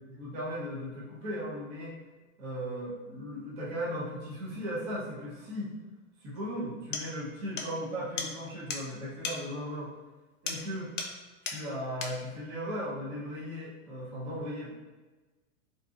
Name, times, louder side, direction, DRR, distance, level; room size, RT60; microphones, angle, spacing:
voice 1, 0.0-2.0 2.4-5.7 6.2-9.9 10.4-11.0 11.4-14.7, equal, 20° right, -6 dB, 0.5 m, -37 dB
sound 1, 6.4-6.5 6.9-7.1 7.6-7.7 8.2-8.3 8.7-8.8 9.2-9.4 10.5-10.7 11.0-11.2 11.4-11.6 12.0-12.2, left 5 dB, 75° left, 0.6 m, -35 dB
2.6 x 2.5 x 2.3 m, 1.2 s
supercardioid pair, 150°, 37 cm